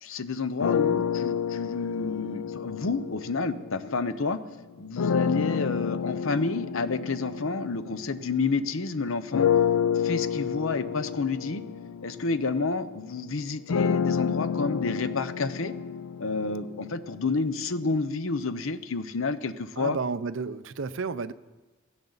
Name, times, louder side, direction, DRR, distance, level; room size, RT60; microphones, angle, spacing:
voice 1, 0.0-4.4 4.8-9.5 9.9-11.6 12.0-15.7 16.2-20.0, left 4 dB, 65° left, 12 dB, 0.8 m, -30 dB
sound 1, 0.6-4.2 5.0-8.7 9.3-17.3, left 7 dB, 90° left, 0.4 m, -29 dB
voice 2, 19.8-21.3, right 4 dB, 60° right, 13 dB, 0.5 m, -31 dB
17.0 x 15.5 x 4.0 m, 1.2 s
head